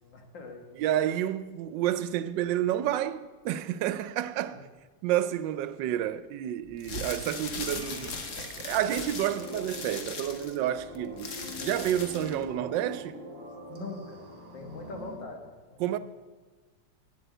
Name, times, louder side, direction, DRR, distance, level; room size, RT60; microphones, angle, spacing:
voice 1, 0.0-0.7 4.5-4.6 13.7-14.2 14.5-16.0, left 3 dB, 85° left, 2.2 m, -42 dB
voice 2, 0.7-4.6 5.0-13.2 15.8-16.0, right 12 dB, 85° right, 1.3 m, -30 dB
sound 1, 6.7-12.4, left 4 dB, 50° left, 1.3 m, -39 dB
sound 2, 7.7-15.2, equal, 35° right, 1.5 m, -43 dB
9.5 x 7.7 x 8.1 m
omnidirectional pair, 1.9 m